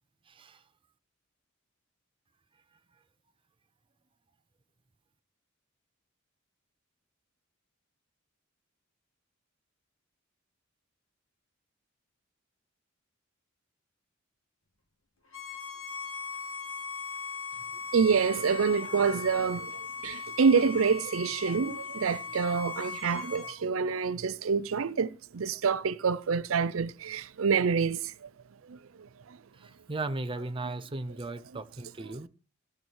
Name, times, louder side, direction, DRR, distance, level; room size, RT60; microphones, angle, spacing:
voice 1, 0.3-0.6 29.6-32.3, right 2 dB, 25° right, 0.6 m, -36 dB
Bowed string instrument, 15.3-23.6, left 5 dB, 85° left, 2.4 m, -39 dB
voice 2, 17.9-19.7 20.0-28.3 28.7-28.8 29.3-29.4, right 5 dB, 80° right, 0.5 m, -27 dB
16.5 x 6.0 x 4.6 m
head